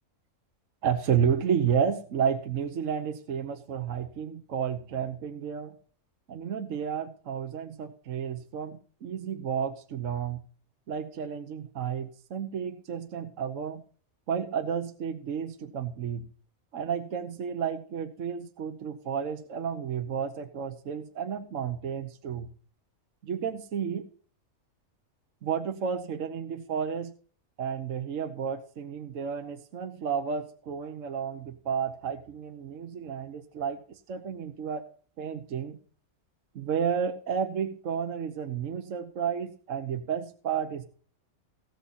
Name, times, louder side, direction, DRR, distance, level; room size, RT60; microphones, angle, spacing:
voice 1, 0.8-5.8 6.3-10.4 10.9-13.8 14.3-16.3 16.7-22.5 23.2-24.1 25.4-27.1 27.6-34.9 35.2-35.8 36.5-40.9, right 7 dB, 65° right, 7 dB, 1.3 m, -31 dB
17.0 x 6.9 x 4.1 m, 0.43 s
omnidirectional pair, 1.5 m